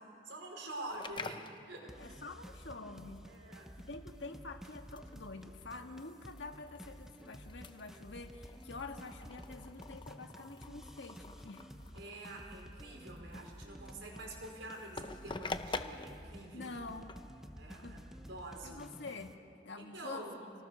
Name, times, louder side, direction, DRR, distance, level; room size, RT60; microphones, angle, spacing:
voice 1, 0.3-1.9 3.2-3.7 11.9-16.7 17.6-18.8 19.8-20.4, right 1 dB, 75° right, 1 dB, 4.9 m, -47 dB
sound 1, 0.9-18.6, left 3 dB, 25° left, 0.7 m, -48 dB
sound 2, 1.9-19.3, equal, ahead, 0.9 m, -52 dB
voice 2, 2.0-3.3 3.8-11.6 13.3-13.4 14.1-14.2 16.5-17.1 17.8-18.0 18.6-20.3, left 3 dB, 70° left, 5 dB, 1.6 m, -47 dB
28.5 x 19.0 x 6.6 m, 2.6 s
head